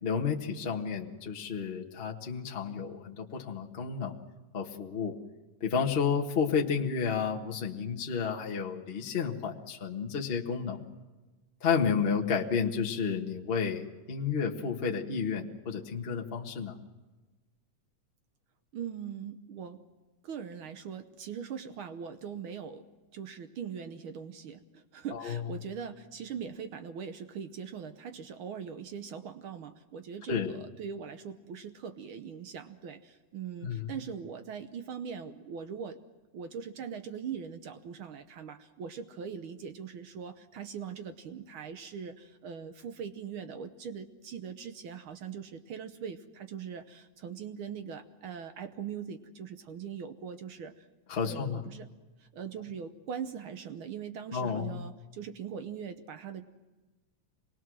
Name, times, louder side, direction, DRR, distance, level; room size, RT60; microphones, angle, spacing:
voice 1, 0.0-4.2 4.5-5.1 5.6-10.8 11.6-16.7 25.1-25.4 30.3-30.5 33.6-33.9 51.1-51.6 54.3-54.8, left 6 dB, 35° left, -1 dB, 0.9 m, -31 dB
voice 2, 18.7-19.8 20.2-22.8 23.1-36.0 36.3-50.9 51.2-51.9 52.2-56.4, right 7 dB, 70° right, 8 dB, 1.3 m, -41 dB
25.5 x 20.5 x 6.3 m, 1.2 s
omnidirectional pair, 3.3 m